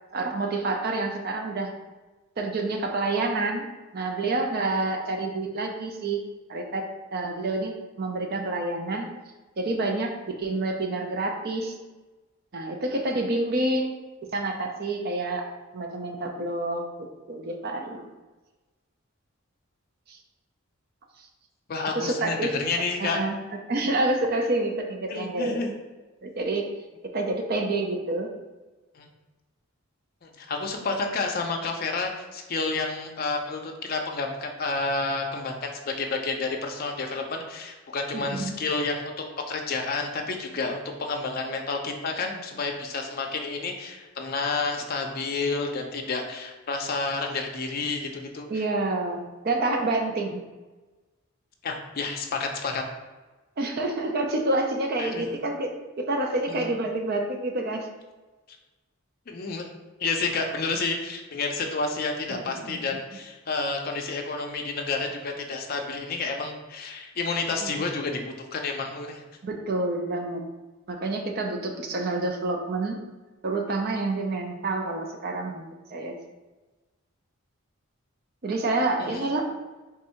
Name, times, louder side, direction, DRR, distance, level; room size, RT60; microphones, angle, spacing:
voice 1, 0.1-1.7 2.4-3.6 3.9-6.2 6.5-6.8 7.1-9.1 9.6-11.7 12.5-13.9 14.3-15.5 15.7-16.8 17.3-18.0 20.1-20.2 21.9-22.5 23.0-23.4 23.7-25.6 26.2-26.6 27.1-28.3 38.1-38.5 48.5-49.2 49.4-50.4 53.6-55.7 56.0-57.9 62.3-62.7 67.6-67.7 69.4-70.4 70.9-73.0 73.4-75.7 75.9-76.1 78.4-79.4, right 2 dB, 45° right, 3 dB, 0.4 m, -28 dB
voice 2, 21.7-23.2 25.1-25.7 29.0-29.1 30.2-39.1 39.5-48.5 51.6-52.8 55.0-55.4 56.5-56.7 59.3-59.6 60.0-69.2 79.0-79.2, left 3 dB, 45° left, 2 dB, 0.5 m, -30 dB
3.6 x 2.6 x 4.3 m, 1.2 s
head